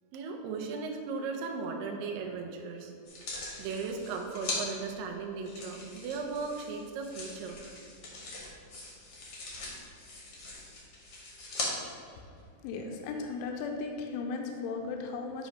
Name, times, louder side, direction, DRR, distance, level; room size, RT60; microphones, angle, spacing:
voice 1, 0.1-2.9 3.6-7.6, right 4 dB, 80° right, 2 dB, 2.1 m, -37 dB
sound 1, 3.1-4.6 5.4-11.7 12.4-12.5, left 2 dB, 65° left, 1.4 m, -41 dB
voice 2, 12.6-15.5, left 4 dB, 80° left, 2 dB, 2.4 m, -36 dB
9.0 x 3.1 x 5.2 m, 2.3 s
omnidirectional pair, 4.7 m